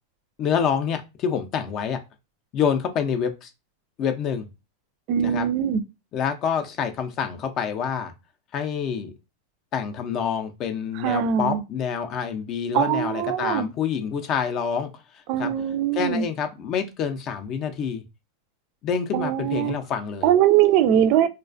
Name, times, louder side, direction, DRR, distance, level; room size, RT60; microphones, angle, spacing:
voice 1, 0.4-2.0 2.5-3.5 4.0-4.5 5.2-5.5 6.1-8.1 8.5-9.1 9.7-14.9 15.4-15.5 15.9-18.0 18.8-20.3, left 7 dB, 35° left, 0.4 m, -27 dB
voice 2, 5.1-5.8 11.0-11.6 12.7-13.7 15.3-16.2 19.1-19.7 20.2-21.3, right 10 dB, 45° right, 0.3 m, -21 dB
2.4 x 2.1 x 2.4 m
supercardioid pair, 145°, 0 cm